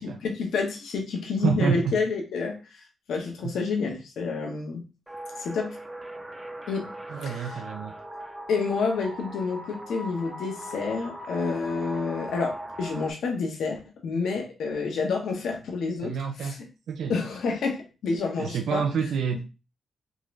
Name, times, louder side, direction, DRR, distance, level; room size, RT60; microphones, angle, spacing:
voice 1, 0.0-2.8 3.1-4.8 5.4-5.8 6.7-6.9 7.2-7.6 8.5-16.6 17.1-18.8, left 4 dB, 80° left, 2 dB, 0.9 m, -29 dB
voice 2, 1.4-1.9 3.4-3.5 7.1-7.9 16.0-16.5 16.9-17.1 18.4-19.4, right 6 dB, 80° right, 4 dB, 0.4 m, -28 dB
sound 1, 5.1-13.1, right 1 dB, 10° right, 0.5 m, -40 dB
3.7 x 2.5 x 3.2 m, 0.31 s
cardioid pair, 95°, 0 cm